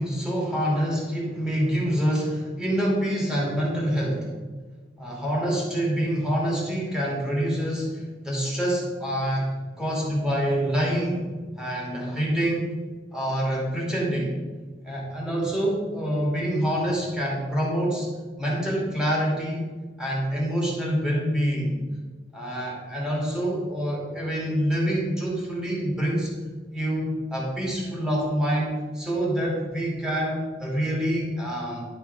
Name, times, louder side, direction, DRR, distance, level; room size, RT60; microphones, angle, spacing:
voice 1, 0.0-4.3 5.0-9.5 9.8-11.3 11.6-12.7 13.1-14.4 14.8-18.1 18.4-19.7 20.0-21.7 22.3-26.3 26.7-31.9, equal, 5° right, -4 dB, 2.7 m, -26 dB
11.5 x 6.1 x 5.3 m, 1.4 s
head